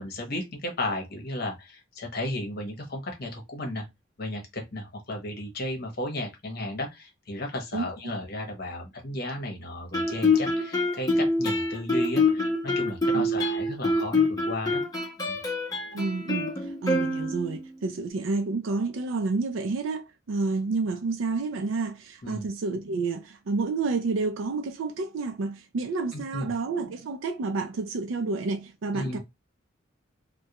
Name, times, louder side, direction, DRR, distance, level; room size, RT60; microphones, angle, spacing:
voice 1, 0.0-3.9 4.2-14.8 15.2-15.4 22.2-22.5 26.1-26.5 28.9-29.2, left 1 dB, 50° left, 0.9 m, -34 dB
Guitar, 9.9-17.6, left 2 dB, 20° left, 0.7 m, -26 dB
voice 2, 15.9-29.2, right 3 dB, 80° right, 0.4 m, -29 dB
2.3 x 2.2 x 2.8 m
head